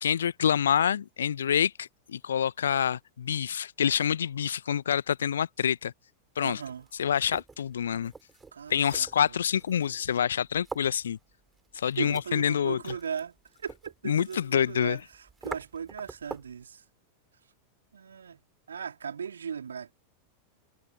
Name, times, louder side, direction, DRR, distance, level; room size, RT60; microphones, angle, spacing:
voice 1, 0.0-5.9 6.4-6.6 7.0-8.1 8.7-11.2 11.7-12.9 14.0-15.0, left 8 dB, 65° left, 1.0 m, -27 dB
sound 1, 6.4-16.6, right 4 dB, 10° right, 6.7 m, -47 dB
voice 2, 6.4-6.9 8.5-9.4 12.0-16.8 17.9-18.4 18.7-19.9, right 7 dB, 70° right, 3.8 m, -38 dB
figure-of-eight pair, 90°, 0 cm